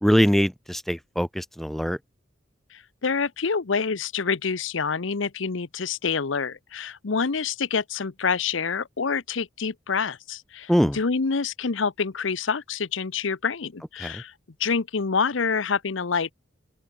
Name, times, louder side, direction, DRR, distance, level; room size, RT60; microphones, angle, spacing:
voice 1, 0.0-2.0 10.7-11.0 14.0-14.2, equal, ahead, 1.0 m, -22 dB
voice 2, 2.7-14.3 14.6-16.3, left 5 dB, 75° left, 0.8 m, -27 dB
open air
head